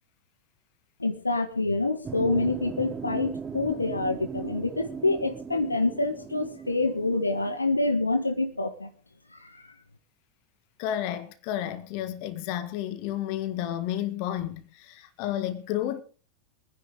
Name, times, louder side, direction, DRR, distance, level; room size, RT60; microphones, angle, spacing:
voice 1, 1.0-8.9 9.3-9.7, left 2 dB, 80° left, 1.5 m, -27 dB
sound 1, 2.0-7.6, right 6 dB, 20° right, 1.2 m, -38 dB
voice 2, 10.8-16.0, left 11 dB, 45° left, 1.8 m, -31 dB
24.0 x 10.5 x 3.8 m
figure-of-eight pair, 90°, 0 cm